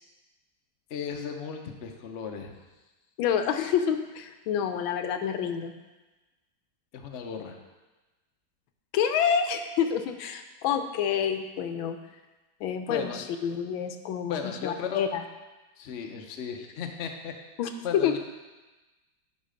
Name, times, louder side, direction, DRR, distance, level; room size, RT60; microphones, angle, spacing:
voice 1, 0.9-2.5 6.9-7.6 12.9-13.3 14.3-15.1 15.8-17.3 17.8-18.2, left 7 dB, 55° left, 3 dB, 0.7 m, -36 dB
voice 2, 3.2-5.7 8.9-12.0 12.6-15.2 17.6-18.2, left 8 dB, 85° left, 7 dB, 1.4 m, -28 dB
11.0 x 4.1 x 5.0 m, 1.2 s
omnidirectional pair, 2.2 m